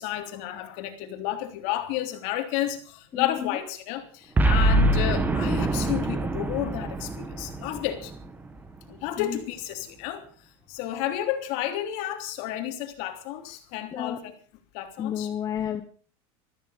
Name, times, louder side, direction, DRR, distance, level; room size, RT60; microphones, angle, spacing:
voice 1, 0.0-8.1 8.9-14.3 14.7-15.3, left 13 dB, 55° left, 3.2 m, -31 dB
voice 2, 3.1-3.6 9.2-9.4 13.9-14.2 15.0-15.8, left 9 dB, 20° left, 1.0 m, -31 dB
Boom, 4.4-8.8, right 2 dB, 10° right, 1.1 m, -24 dB
14.5 x 13.5 x 6.5 m
supercardioid pair, 160°, 15 cm